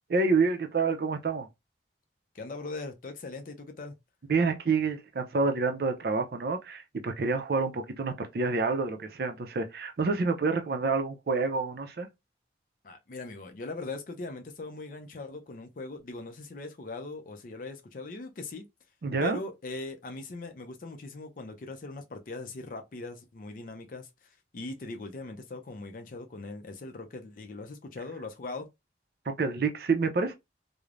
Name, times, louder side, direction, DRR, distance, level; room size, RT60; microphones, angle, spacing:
voice 1, 0.1-1.5 4.3-12.1 19.0-19.4 29.3-30.4, right 4 dB, 55° right, 0.4 m, -28 dB
voice 2, 2.3-3.9 12.8-18.6 19.2-24.1 24.5-28.7, left 3 dB, 45° left, 0.4 m, -40 dB
3.1 x 2.0 x 2.4 m
head